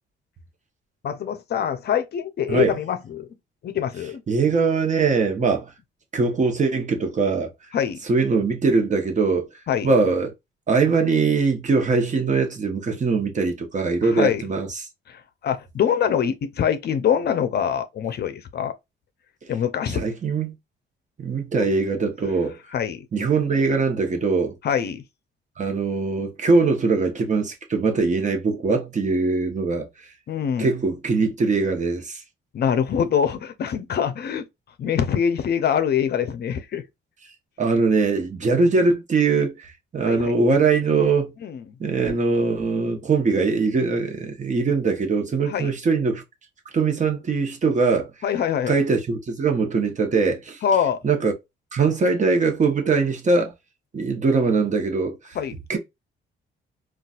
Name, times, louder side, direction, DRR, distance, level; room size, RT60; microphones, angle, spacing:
voice 1, 1.0-3.3 3.6-4.2 7.7-8.0 9.7-9.9 14.0-14.4 15.1-18.7 19.5-20.0 21.6-21.7 22.7-23.0 24.6-25.0 30.3-30.7 32.5-34.5 34.8-36.8 40.0-40.3 41.4-41.6 45.5-45.7 48.2-48.8 50.6-51.0 55.3-55.5, left 8 dB, 55° left, 0.6 m, -24 dB
voice 2, 4.3-5.7 6.1-7.5 8.1-9.5 9.8-10.3 10.7-14.8 19.9-20.5 21.2-22.6 23.1-24.6 25.6-29.9 30.6-32.2 37.6-41.3 41.8-46.2 46.7-48.1 48.7-50.6 51.0-51.3 51.7-53.5 53.9-55.4 55.7-55.8, right 4 dB, 40° right, 0.9 m, -21 dB
3.9 x 2.4 x 2.4 m
cardioid pair, 90°, 20 cm